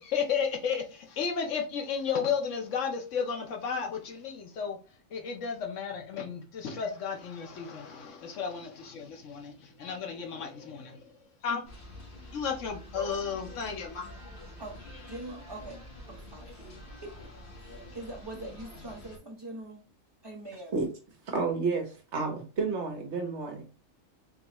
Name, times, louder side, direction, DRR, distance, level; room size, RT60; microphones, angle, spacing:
voice 1, 0.0-4.8 5.1-11.1 11.4-11.6 12.3-14.1, left 6 dB, 70° left, 1.0 m, -33 dB
sound 1, 11.6-19.2, left 1 dB, 45° left, 1.4 m, -47 dB
voice 2, 14.6-15.8 16.1-16.7 17.0-19.8 20.2-20.8, right 1 dB, 20° right, 0.9 m, -43 dB
voice 3, 21.3-23.6, right 4 dB, 60° right, 1.2 m, -31 dB
3.8 x 3.1 x 2.9 m
omnidirectional pair, 1.4 m